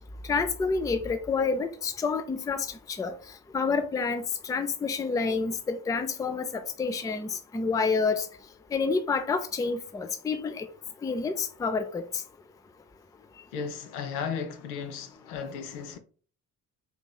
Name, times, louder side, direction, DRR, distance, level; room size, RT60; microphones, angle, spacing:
voice 1, 0.3-3.1 3.5-8.3 8.7-10.7 11.0-12.0, left 4 dB, 10° left, 0.3 m, -28 dB
voice 2, 13.5-16.0, left 6 dB, 80° left, 0.6 m, -35 dB
4.5 x 2.7 x 2.2 m
hypercardioid pair, 40°, 45 cm